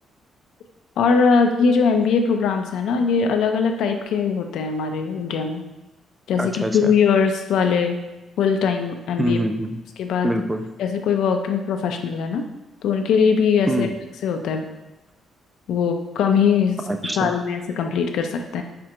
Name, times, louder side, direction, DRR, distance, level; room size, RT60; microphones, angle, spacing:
voice 1, 1.0-5.6 6.3-8.0 8.4-9.4 10.0-10.3 10.8-12.4 12.8-13.9 14.2-14.6 15.7-16.8 17.2-18.6, left 6 dB, 80° left, 5 dB, 0.4 m, -21 dB
voice 2, 6.4-6.9 9.2-9.8 10.2-10.7 13.7-13.9 16.9-17.3, right 1 dB, 10° right, 7 dB, 0.3 m, -24 dB
4.4 x 4.3 x 2.5 m, 1.0 s
cardioid pair, 130°, 0 cm